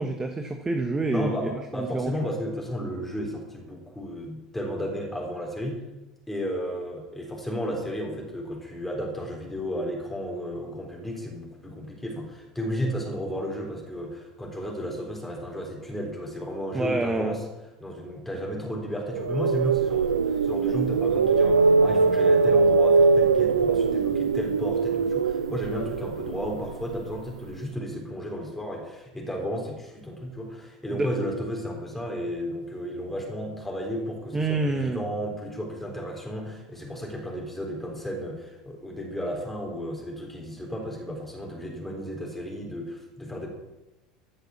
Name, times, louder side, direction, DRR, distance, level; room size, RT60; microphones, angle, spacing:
voice 1, 0.0-2.1 16.7-17.4 31.0-31.1 34.3-35.0, right 3 dB, 15° right, 5 dB, 1.4 m, -27 dB
voice 2, 1.1-5.8 6.3-17.5 17.8-43.5, equal, 5° left, -1 dB, 3.7 m, -33 dB
sound 1, 19.1-27.2, right 4 dB, 85° right, 0.5 m, -22 dB
14.5 x 6.7 x 7.2 m, 1.0 s
hypercardioid pair, 75°, 3 cm